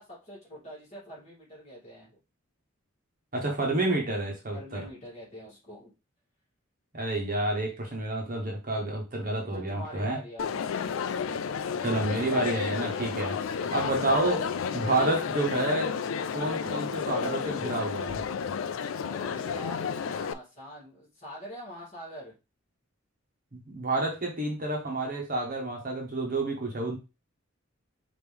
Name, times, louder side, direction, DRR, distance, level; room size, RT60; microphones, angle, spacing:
voice 1, 0.0-2.2 4.5-5.9 9.5-10.7 12.9-13.2 19.0-22.3, equal, 30° left, -6 dB, 2.7 m, -44 dB
voice 2, 3.3-4.8 6.9-10.2 11.8-14.5 14.7-15.9 16.3-18.2 23.7-27.0, right 2 dB, 40° right, -1 dB, 1.3 m, -29 dB
Crowd, 10.4-20.3, left 6 dB, 75° left, 0.3 m, -32 dB
5.2 x 3.0 x 3.5 m, 0.28 s
head